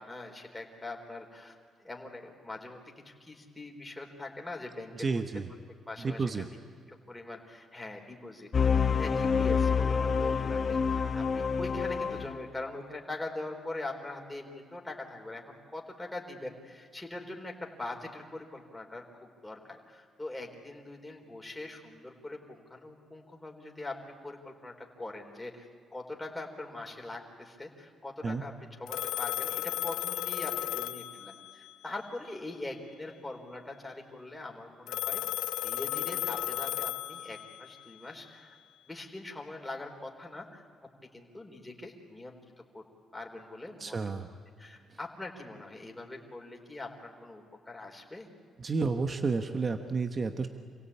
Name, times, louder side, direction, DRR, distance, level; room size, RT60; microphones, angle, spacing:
voice 1, 0.0-1.5 1.8-5.2 5.9-6.3 6.9-24.0 24.2-28.5 28.8-35.2 35.6-38.6 38.9-40.6 41.1-42.4 42.7-42.8 43.1-44.1 44.6-48.3, left 2 dB, 10° left, 1 dB, 4.1 m, -42 dB
voice 2, 4.9-5.5 6.0-6.5 28.2-28.4 43.8-44.3 48.6-50.5, right 4 dB, 40° right, 6 dB, 1.2 m, -31 dB
sound 1, 8.5-12.5, left 6 dB, 40° left, 1.1 m, -27 dB
Telephone, 28.9-31.7 34.9-37.7, left 14 dB, 85° left, 0.6 m, -34 dB
27.5 x 17.0 x 8.7 m, 2.2 s
cardioid pair, 90°, 0 cm